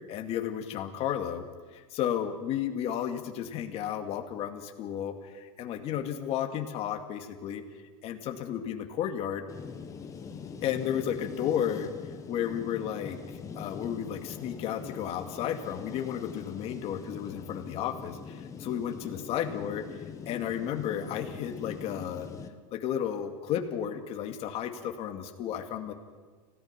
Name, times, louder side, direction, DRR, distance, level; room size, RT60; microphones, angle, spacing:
voice 1, 0.1-1.4 1.7-7.6 8.0-9.4 10.6-11.9 12.3-13.2 13.6-19.8 20.3-22.3 22.7-25.9, left 9 dB, 35° left, 5 dB, 2.3 m, -33 dB
sound 1, 9.5-22.5, left 6 dB, 20° left, 1.4 m, -43 dB
30.0 x 17.5 x 6.0 m, 1.5 s
supercardioid pair, 150°, 17 cm